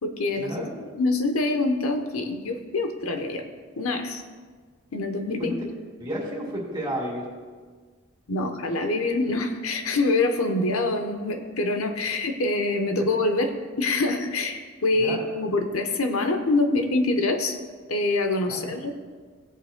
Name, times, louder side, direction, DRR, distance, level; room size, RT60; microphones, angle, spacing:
voice 1, 0.0-3.4 3.8-4.2 4.9-5.6 8.3-13.5 13.8-17.6 17.9-18.9, left 2 dB, 85° left, 5 dB, 0.9 m, -25 dB
voice 2, 6.0-7.2 15.0-15.2 18.5-18.7, right 1 dB, 20° right, -3 dB, 2.1 m, -31 dB
17.0 x 8.1 x 2.2 m, 1.5 s
head